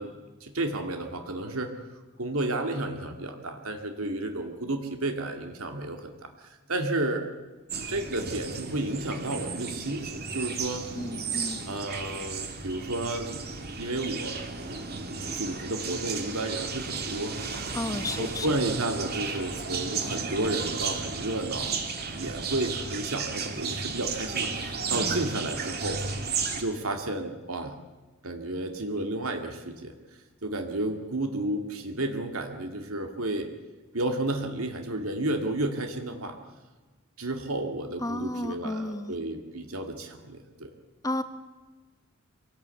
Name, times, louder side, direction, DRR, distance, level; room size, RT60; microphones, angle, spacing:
voice 1, 0.0-1.7 2.2-7.3 7.9-10.9 11.7-13.4 13.8-14.7 15.3-17.6 18.1-21.8 22.1-26.0 26.6-27.8 28.2-30.0 30.4-33.5 33.9-36.4 37.2-40.7, right 2 dB, 75° right, 4 dB, 2.2 m, -32 dB
sound 1, 7.7-26.6, right 5 dB, 45° right, 2.6 m, -34 dB
voice 2, 10.9-11.6 17.7-18.5 38.0-39.1 41.0-41.2, left 1 dB, 15° left, 10 dB, 1.2 m, -32 dB
24.5 x 17.5 x 8.3 m, 1.2 s
head